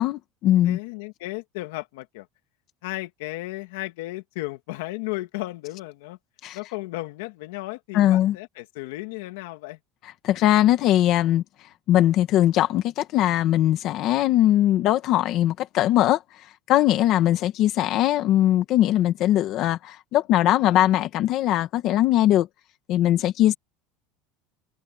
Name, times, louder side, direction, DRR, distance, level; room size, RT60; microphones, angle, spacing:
voice 1, 0.0-0.8 6.4-6.6 7.9-8.4 10.2-11.4 11.9-16.2 16.7-22.5 22.9-23.5, left 13 dB, 40° left, 1.7 m, -20 dB
voice 2, 0.6-2.3 2.8-6.2 6.5-9.8 17.3-17.5 20.6-20.8, left 20 dB, 85° left, 2.1 m, -34 dB
cardioid pair, 180°, 0 cm